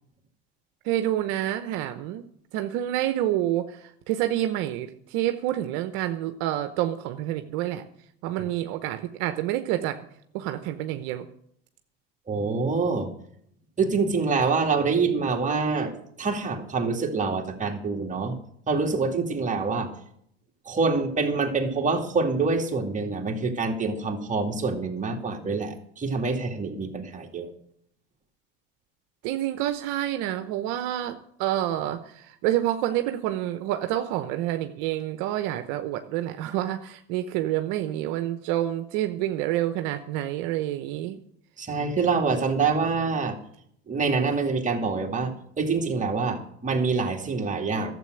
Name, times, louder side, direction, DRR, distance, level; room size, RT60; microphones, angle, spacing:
voice 1, 0.8-7.8 8.2-10.0 10.3-11.3 29.2-41.2, right 13 dB, 65° right, 8 dB, 0.9 m, -28 dB
voice 2, 12.3-13.1 13.8-15.9 16.2-18.3 18.7-19.9 20.7-27.5 41.6-43.4 43.9-45.3 45.6-47.9, right 4 dB, 25° right, 2 dB, 2.4 m, -26 dB
12.5 x 7.8 x 7.8 m, 0.69 s
supercardioid pair, 90°, 32 cm